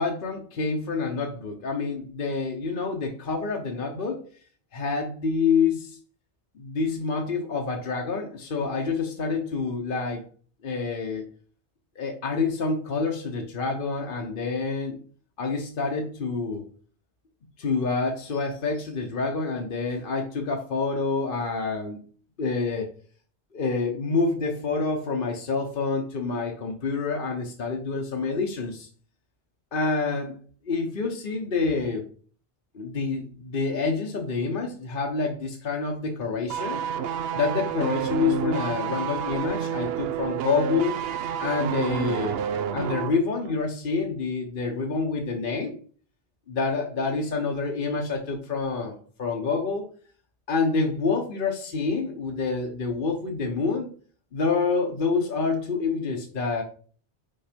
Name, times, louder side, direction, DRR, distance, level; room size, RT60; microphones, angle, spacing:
voice 1, 0.0-4.2 4.7-6.0 6.5-10.2 10.6-11.2 12.0-15.0 15.4-16.6 17.6-22.0 22.4-22.9 23.5-28.9 29.7-30.4 30.6-32.1 32.7-36.8 37.3-41.0 41.4-42.4 42.7-45.8 46.5-49.9 50.5-53.9 54.3-56.6, left 4 dB, 50° left, 1 dB, 1.1 m, -27 dB
sound 1, 36.5-43.2 43.4-43.6, right 8 dB, 65° right, 0.8 m, -29 dB
5.6 x 4.8 x 5.1 m, 0.43 s
omnidirectional pair, 1.2 m